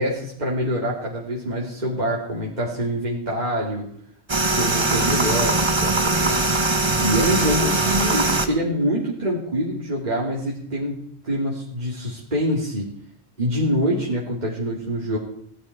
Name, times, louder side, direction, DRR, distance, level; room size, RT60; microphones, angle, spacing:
voice 1, 0.0-3.9 4.6-6.4 7.0-11.0 11.2-12.9 13.4-15.2, equal, 40° right, -4 dB, 2.8 m, -25 dB
sound 1, 4.3-8.5, right 2 dB, 25° right, 1.2 m, -21 dB
17.0 x 13.0 x 4.7 m, 0.67 s
omnidirectional pair, 1.1 m